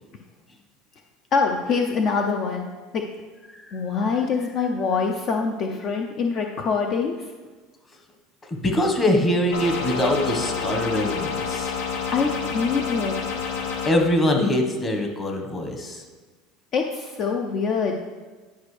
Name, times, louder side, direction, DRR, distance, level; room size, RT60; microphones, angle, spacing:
voice 1, 1.3-2.7 2.9-3.0 3.7-7.3 11.8-13.4 16.7-18.0, left 5 dB, 50° left, 3 dB, 0.6 m, -25 dB
voice 2, 3.5-3.8 8.5-11.7 13.8-16.0, left 1 dB, 25° left, 3 dB, 1.2 m, -23 dB
sound 1, 9.5-13.9, left 6 dB, 80° left, 1.0 m, -28 dB
10.0 x 5.1 x 3.3 m, 1.3 s
supercardioid pair, 115°, 0 cm